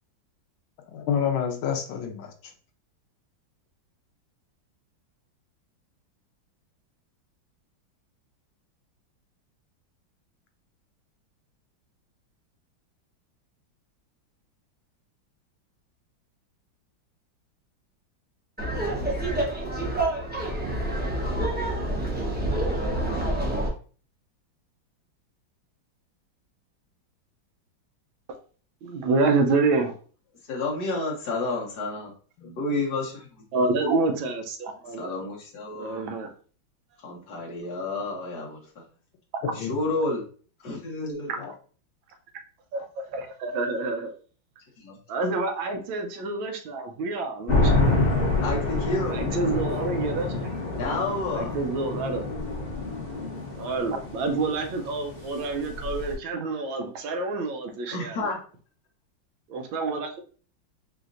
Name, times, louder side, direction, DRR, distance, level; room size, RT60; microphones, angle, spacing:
voice 1, 0.9-2.3 32.4-32.5 39.4-39.7 41.4-41.5, left 8 dB, 80° left, 1.5 m, -28 dB
Laughter, 18.6-23.7, right 1 dB, 10° right, 0.5 m, -27 dB
voice 2, 28.8-29.9 33.5-35.1 35.7-36.3 42.7-42.8 43.1-44.1 45.1-48.0 49.1-50.3 51.4-52.2 53.6-58.3 59.5-60.2, right 3 dB, 80° right, 1.4 m, -27 dB
voice 3, 30.5-32.1 32.6-33.4 35.0-36.0 37.0-38.8 39.5-40.2 40.6-41.5 44.8-45.0 48.4-49.2 50.8-51.5 57.9-58.4, left 2 dB, 60° left, 1.6 m, -30 dB
sound 1, 47.5-56.1, left 2 dB, 30° left, 1.3 m, -27 dB
5.1 x 2.8 x 2.5 m
omnidirectional pair, 2.2 m